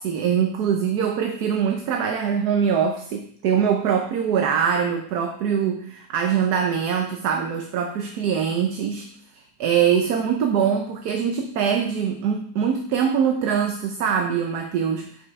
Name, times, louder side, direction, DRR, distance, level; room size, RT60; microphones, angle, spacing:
voice 1, 0.0-9.1 9.6-15.1, right 7 dB, 70° right, 4 dB, 1.2 m, -23 dB
9.7 x 5.2 x 4.7 m, 0.64 s
omnidirectional pair, 1.8 m